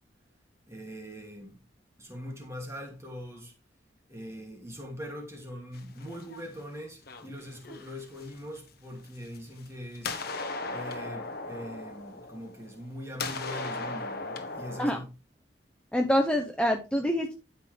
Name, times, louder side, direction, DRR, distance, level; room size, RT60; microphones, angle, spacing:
voice 1, 0.7-1.6 2.0-3.5 4.1-10.2 10.7-15.1, equal, 15° right, 2.6 m, -42 dB
sound 1, 5.7-6.6 7.1-8.6 9.2-9.7 10.0-12.9 13.2-14.9, left 3 dB, 55° left, 1.3 m, -37 dB
voice 2, 15.9-17.3, equal, 5° left, 0.9 m, -26 dB
12.0 x 6.4 x 3.4 m
head